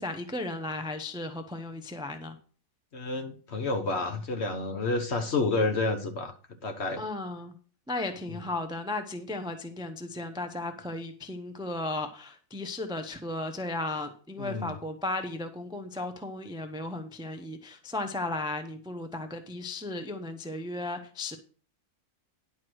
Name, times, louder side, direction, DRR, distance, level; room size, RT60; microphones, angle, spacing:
voice 1, 0.0-2.4 7.0-7.6 7.9-21.4, left 2 dB, 5° right, 7 dB, 0.4 m, -35 dB
voice 2, 2.9-6.3 6.6-7.0 8.3-8.4 14.4-14.8, left 3 dB, 50° left, 7 dB, 1.2 m, -29 dB
10.5 x 4.7 x 6.2 m, 0.41 s
omnidirectional pair, 1.6 m